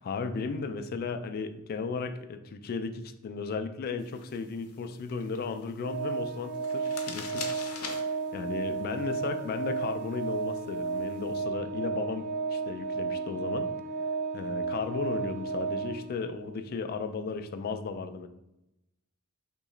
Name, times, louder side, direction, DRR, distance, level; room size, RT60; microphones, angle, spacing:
voice 1, 0.1-7.5 8.3-13.7 14.3-18.3, left 4 dB, 45° left, 8 dB, 0.3 m, -35 dB
sound 1, 4.0-11.4, left 5 dB, 85° left, 0.6 m, -46 dB
Organ, 5.8-16.5, right 4 dB, 40° right, 0.4 m, -33 dB
3.0 x 2.8 x 3.7 m, 0.90 s
head